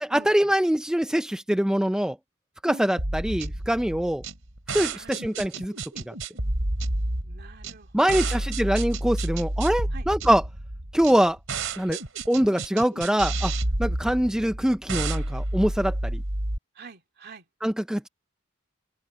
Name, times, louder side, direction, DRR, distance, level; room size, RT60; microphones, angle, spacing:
voice 1, 0.1-2.2 2.6-4.2 4.7-5.7 6.1-6.2 7.9-10.4 10.9-11.4 11.8-12.0 12.3-13.5 13.8-16.2 17.6-18.1, equal, 5° right, 0.4 m, -23 dB
voice 2, 2.6-3.0 4.9-5.2 7.2-8.5 9.9-10.1 16.7-17.4, right 4 dB, 50° right, 2.3 m, -45 dB
sound 1, 3.0-16.6, right 2 dB, 70° right, 3.5 m, -30 dB
open air
head